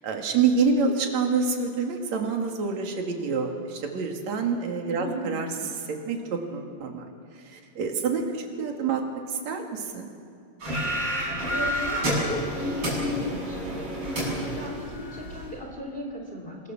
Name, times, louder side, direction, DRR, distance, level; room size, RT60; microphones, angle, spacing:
voice 1, 0.0-7.1 7.5-9.0 9.3-10.1, right 5 dB, 60° right, 2 dB, 3.4 m, -27 dB
voice 2, 4.9-5.2 11.5-16.7, left 1 dB, 15° left, 1 dB, 2.9 m, -35 dB
sound 1, 10.6-15.5, equal, 35° right, 8.3 m, -29 dB
27.0 x 21.5 x 7.3 m, 2.4 s
omnidirectional pair, 3.8 m